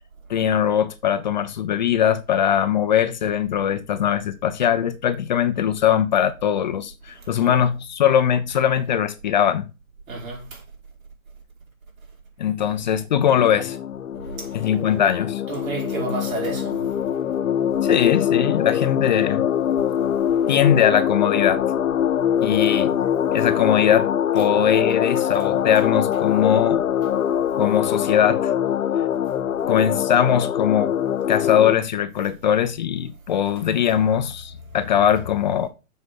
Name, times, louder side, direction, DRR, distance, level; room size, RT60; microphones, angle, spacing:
voice 1, 0.3-9.7 12.4-13.8 14.5-15.4 17.8-19.5 20.5-21.6 22.4-23.0 23.3-26.8 27.6-28.5 29.7-30.9 31.3-35.7, left 9 dB, 35° left, 0.6 m, -21 dB
voice 2, 10.1-10.6 12.6-12.8 14.1-14.5 15.5-16.8, right 4 dB, 70° right, 5.2 m, -31 dB
sound 1, 13.3-31.8, left 9 dB, 75° left, 1.0 m, -23 dB
7.5 x 5.1 x 6.1 m
hypercardioid pair, 155°, 42 cm